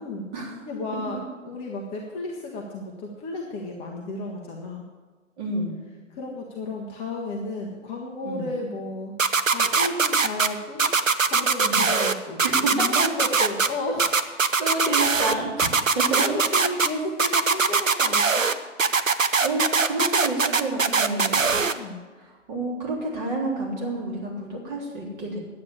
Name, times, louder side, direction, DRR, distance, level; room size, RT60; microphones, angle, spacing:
voice 1, 0.6-4.8 6.1-10.9 11.2-14.2 16.1-18.5 21.7-22.0, left 2 dB, 15° left, -1 dB, 0.9 m, -33 dB
voice 2, 5.4-5.8 8.2-8.5 11.6-11.9 12.4-13.1 14.6-15.7 15.9-16.4 19.4-21.6 22.2-25.4, right 2 dB, 35° right, -2 dB, 3.6 m, -29 dB
sound 1, 9.2-10.5 10.8-12.1 12.4-13.7 14.0-15.3 15.6-16.9 17.2-18.5 18.8-21.7, right 5 dB, 80° right, 0.9 m, -21 dB
10.5 x 8.6 x 8.6 m, 1.4 s
figure-of-eight pair, 125°, 39 cm